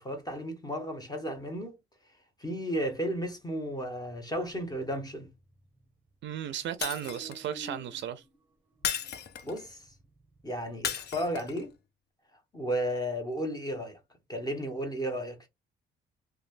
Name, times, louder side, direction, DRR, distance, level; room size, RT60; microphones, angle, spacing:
voice 1, 0.0-1.8 2.4-5.3 9.4-9.8 10.4-11.7 12.5-14.0 14.3-15.5, equal, 20° left, 1.1 m, -33 dB
sound 1, 3.7-6.2 6.5-11.7, right 1 dB, 10° right, 1.0 m, -53 dB
voice 2, 6.2-8.2, right 10 dB, 70° right, 0.4 m, -35 dB
Shatter, 6.8-7.5 8.8-9.7 10.8-11.6, left 8 dB, 55° left, 0.5 m, -35 dB
3.1 x 2.3 x 2.5 m
cardioid pair, 90°, 20 cm